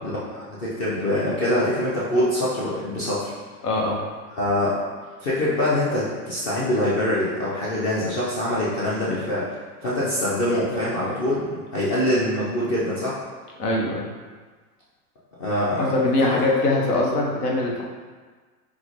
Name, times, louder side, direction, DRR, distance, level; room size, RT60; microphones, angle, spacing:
voice 1, 0.0-3.3 4.4-4.8 5.2-9.5 9.8-13.2 15.4-15.9, left 1 dB, 25° left, -8 dB, 0.4 m, -24 dB
voice 2, 3.6-4.0 13.6-14.1 15.8-17.8, left 2 dB, 90° left, -2 dB, 1.0 m, -22 dB
3.8 x 2.1 x 3.1 m, 1.4 s
hypercardioid pair, 135°, 46 cm